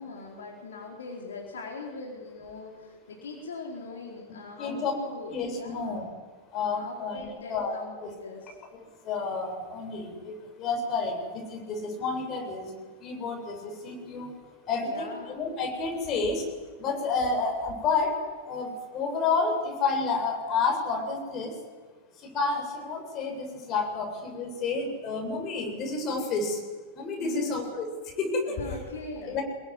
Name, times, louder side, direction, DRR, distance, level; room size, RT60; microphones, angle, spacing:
voice 1, 0.0-6.0 6.8-8.5 14.7-15.4 27.2-27.6 28.5-29.4, left 3 dB, 65° left, 0 dB, 4.3 m, -40 dB
voice 2, 4.6-4.9 5.3-6.1 6.5-8.1 8.5-12.7 13.0-14.4 14.7-16.5 16.8-21.6 22.2-26.7 27.0-28.7 29.2-29.4, left 4 dB, 35° left, 3 dB, 7.6 m, -30 dB
26.5 x 22.0 x 9.9 m, 1.4 s
figure-of-eight pair, 90°, 0 cm